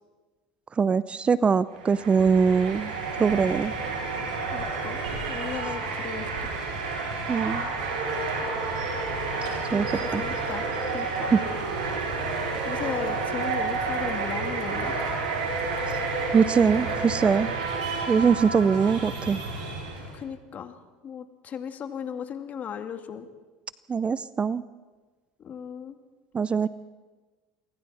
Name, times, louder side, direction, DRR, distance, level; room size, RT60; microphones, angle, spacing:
voice 1, 0.8-2.9 3.2-3.7 7.3-7.7 9.7-10.2 11.3-11.4 15.9-16.0 16.3-17.5 18.1-19.4 23.9-24.6 26.3-26.7, right 6 dB, 25° right, 17 dB, 0.6 m, -22 dB
sound 1, 1.7-20.2, right 4 dB, 85° right, 6.1 m, -30 dB
voice 2, 4.5-5.0 5.3-6.5 8.4-8.5 9.7-10.7 10.9-11.3 12.6-14.9 20.1-20.8 21.0-23.3 25.4-26.0, left 8 dB, 40° left, 7 dB, 2.1 m, -36 dB
27.5 x 23.5 x 4.3 m, 1.3 s
hypercardioid pair, 80°, 4 cm